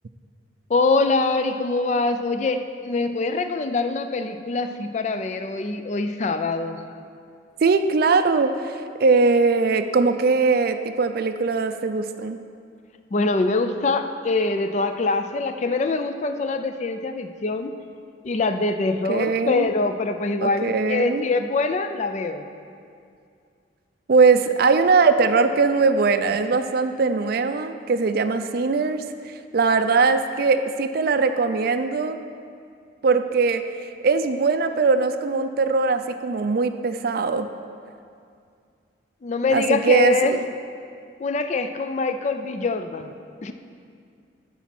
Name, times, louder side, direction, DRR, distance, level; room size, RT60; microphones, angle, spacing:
voice 1, 0.7-6.8 13.1-17.7 18.2-22.4 39.2-40.4 41.2-43.1 43.4-43.5, left 3 dB, 35° left, 8 dB, 0.4 m, -24 dB
voice 2, 7.6-12.4 19.1-19.7 20.4-21.3 24.1-32.2 33.0-33.6 34.0-37.5 39.5-40.4, right 4 dB, 50° right, 9 dB, 0.4 m, -21 dB
11.5 x 4.1 x 5.9 m, 2.3 s
head